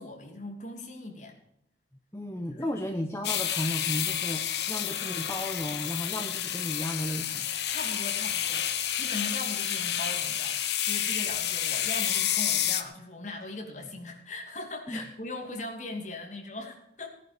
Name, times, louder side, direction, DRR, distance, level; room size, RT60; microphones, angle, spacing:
voice 1, 0.0-1.4 2.5-2.6 7.7-17.1, left 2 dB, 40° left, 2 dB, 2.8 m, -40 dB
voice 2, 2.1-7.5 14.9-15.1, left 1 dB, 15° left, 3 dB, 1.0 m, -34 dB
sound 1, 3.2-12.8, left 10 dB, 65° left, 1.1 m, -30 dB
17.0 x 11.0 x 5.1 m, 0.77 s
head